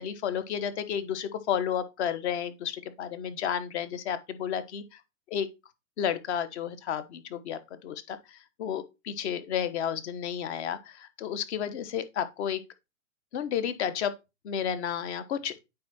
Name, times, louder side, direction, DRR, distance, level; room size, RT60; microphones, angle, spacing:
voice 1, 0.0-4.8 5.3-5.5 6.0-12.6 13.3-14.1 14.4-15.5, left 8 dB, 55° left, 1.3 m, -32 dB
9.3 x 3.9 x 4.3 m
hypercardioid pair, 150°, 40 cm